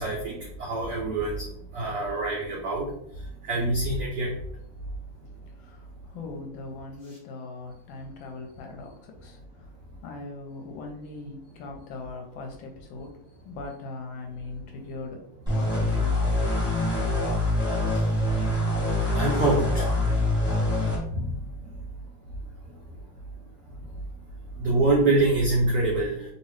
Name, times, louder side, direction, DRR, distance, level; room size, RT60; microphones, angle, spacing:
voice 1, 0.0-1.5 1.7-2.9 3.4-4.3 19.1-19.9 21.1-21.2 24.6-26.1, right 2 dB, 90° right, -2 dB, 0.8 m, -25 dB
voice 2, 5.6-9.7 10.0-13.2 13.4-16.4, left 3 dB, 75° left, 2 dB, 1.2 m, -40 dB
sound 1, 15.5-21.0, left 1 dB, 5° right, 0.7 m, -25 dB
2.9 x 2.8 x 3.1 m, 0.73 s
omnidirectional pair, 2.3 m